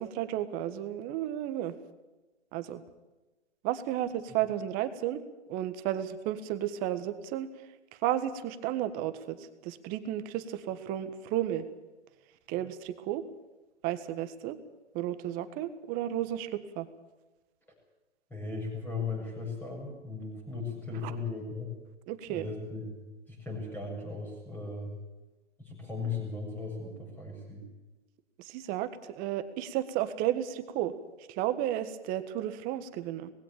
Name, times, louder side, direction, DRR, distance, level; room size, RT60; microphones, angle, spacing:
voice 1, 0.0-1.7 2.5-2.8 3.6-5.2 5.5-7.5 8.0-11.7 12.5-13.3 13.8-14.6 14.9-16.9 21.0-21.1 22.1-22.5 28.4-30.9 31.3-33.3, right 12 dB, 25° right, 12 dB, 1.6 m, -33 dB
voice 2, 18.3-21.7 22.3-22.9 23.3-24.9 25.6-27.6, left 4 dB, 5° left, 0 dB, 7.3 m, -37 dB
20.0 x 16.5 x 8.9 m, 1.1 s
hypercardioid pair, 135°, 35 cm